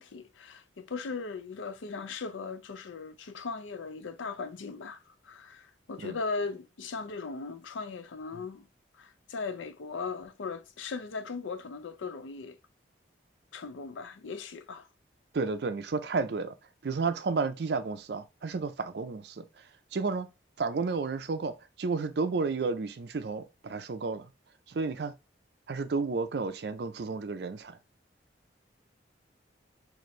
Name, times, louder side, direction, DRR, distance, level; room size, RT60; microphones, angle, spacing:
voice 1, 0.0-8.7 8.9-12.6 13.5-14.9, left 4 dB, 90° left, 0.5 m, -38 dB
voice 2, 15.3-16.5 16.8-19.6 19.9-20.3 20.6-24.3 24.7-25.1 25.7-27.8, right 4 dB, 60° right, 0.4 m, -32 dB
4.2 x 2.6 x 3.1 m
head